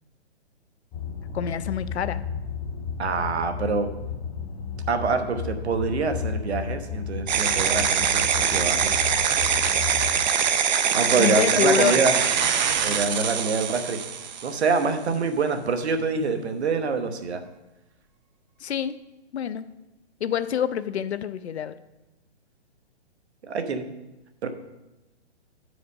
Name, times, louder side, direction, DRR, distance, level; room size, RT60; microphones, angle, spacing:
sound 1, 0.9-10.1, left 6 dB, 15° left, 0.6 m, -33 dB
voice 1, 1.3-2.2 11.2-12.0 18.6-19.0 19.3-19.7 20.2-21.7, left 8 dB, 70° left, 14 dB, 0.6 m, -26 dB
voice 2, 3.0-3.9 4.9-8.9 10.9-12.1 12.8-14.0 14.4-17.4 23.4-23.9 24.4-24.5, right 4 dB, 70° right, 7 dB, 1.1 m, -25 dB
sound 2, 7.3-14.8, right 7 dB, 40° right, 0.6 m, -23 dB
9.5 x 5.0 x 5.2 m, 1.0 s
hypercardioid pair, 150°, 34 cm